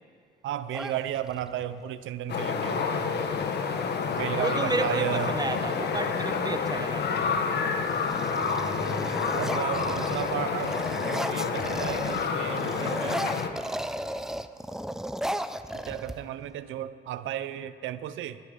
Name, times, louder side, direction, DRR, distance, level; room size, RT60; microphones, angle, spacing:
voice 1, 0.4-3.1 4.2-5.4 9.3-10.7 11.1-13.2 15.7-18.4, right 11 dB, 80° right, 13 dB, 0.6 m, -34 dB
sound 1, 0.7-1.6 3.3-3.5 3.8-4.3 4.8-6.4 7.0-7.4 7.7-12.3 12.6-16.5, right 1 dB, ahead, 0.5 m, -35 dB
sound 2, 2.3-13.5, left 5 dB, 55° left, 1.2 m, -29 dB
voice 2, 3.6-7.2 9.1-9.4, right 3 dB, 20° right, 9 dB, 1.0 m, -33 dB
19.0 x 10.5 x 5.4 m, 2.2 s
cardioid pair, 90°, 20 cm